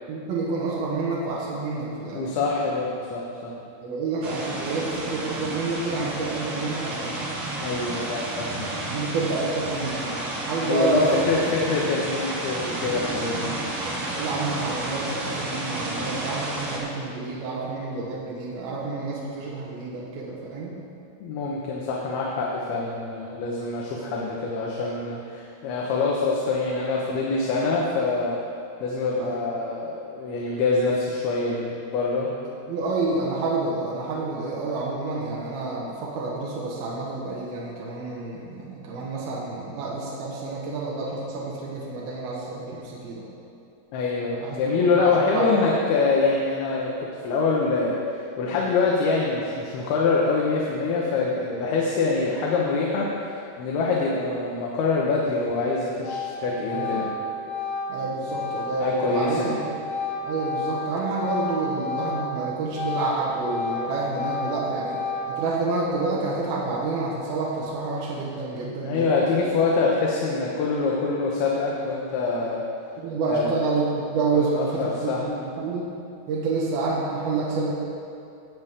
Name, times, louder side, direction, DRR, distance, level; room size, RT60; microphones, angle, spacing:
voice 1, 0.1-2.4 3.8-7.3 8.9-11.3 11.7-11.8 13.9-20.8 29.2-29.4 32.7-43.3 44.4-45.5 56.7-57.0 57.9-59.7 60.2-65.0 65.3-69.3 73.0-75.1 75.4-75.9 76.3-77.7, right 3 dB, 75° right, -5 dB, 3.3 m, -29 dB
voice 2, 2.1-3.5 7.6-9.0 10.6-13.5 21.2-28.4 28.8-32.3 43.9-46.9 47.2-47.9 48.4-53.1 53.6-57.1 58.8-59.6 68.8-72.6 73.3-73.5 74.3-75.3, left 3 dB, 85° left, -3 dB, 3.0 m, -25 dB
sound 1, 4.2-16.8, right 2 dB, 55° right, 1.7 m, -31 dB
Organ, 55.5-55.7 56.0-62.4 62.7-65.6, left 2 dB, 65° left, 2.0 m, -31 dB
16.5 x 8.2 x 3.6 m, 2.5 s
omnidirectional pair, 4.4 m